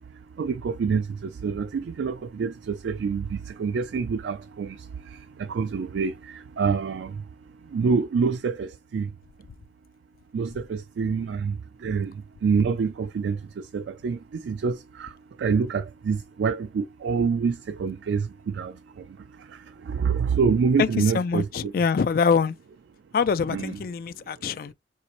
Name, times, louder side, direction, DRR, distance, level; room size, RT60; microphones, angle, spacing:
voice 1, 0.4-7.2 7.7-9.1 10.3-12.1 12.4-15.1 15.4-19.1 19.4-21.4 23.5-23.7, right 5 dB, 90° right, 0.3 m, -27 dB
voice 2, 20.8-22.5 23.1-24.7, left 6 dB, 55° left, 0.3 m, -24 dB
4.0 x 2.5 x 2.9 m
head